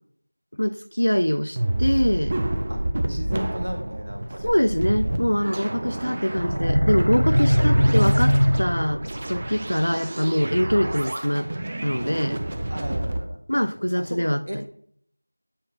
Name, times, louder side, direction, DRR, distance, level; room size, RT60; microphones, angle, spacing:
voice 1, 0.5-2.4 4.4-11.5 11.8-12.4 13.5-14.4, equal, 65° left, 0.4 m, -24 dB
sound 1, 1.6-13.2, right 1 dB, 20° right, 0.4 m, -29 dB
voice 2, 2.7-6.4 12.7-13.7 13.9-14.6, equal, 55° right, 1.2 m, -37 dB
sound 2, 6.4-9.2, equal, 85° right, 0.7 m, -20 dB
8.3 x 4.8 x 2.8 m
figure-of-eight pair, 175°, 0 cm